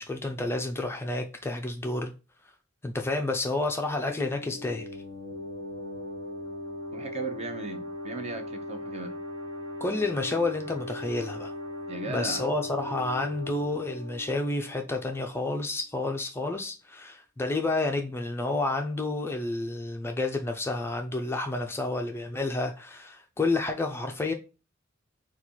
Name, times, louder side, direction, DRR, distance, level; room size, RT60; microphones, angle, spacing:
voice 1, 0.0-2.1 2.8-4.9 9.8-11.5 12.1-24.3, left 2 dB, 10° left, 0.4 m, -30 dB
sound 1, 4.1-15.5, left 1 dB, 65° right, 1.5 m, -39 dB
voice 2, 6.9-9.1 11.9-12.4, right 3 dB, 35° right, 0.7 m, -37 dB
4.1 x 2.3 x 4.4 m
head